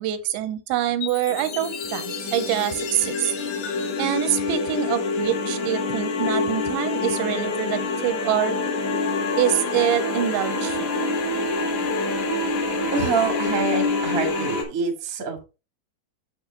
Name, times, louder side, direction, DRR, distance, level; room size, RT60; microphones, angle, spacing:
voice 1, 0.0-3.3 4.0-8.6 9.4-10.9, right 12 dB, 85° right, 2.9 m, -25 dB
Chime, 1.0-5.7, left 7 dB, 75° left, 1.7 m, -37 dB
sound 1, 1.3-14.6, left 3 dB, 45° left, 3.2 m, -26 dB
voice 2, 12.9-15.5, right 5 dB, 50° right, 0.9 m, -26 dB
8.2 x 6.5 x 3.4 m
omnidirectional pair, 5.3 m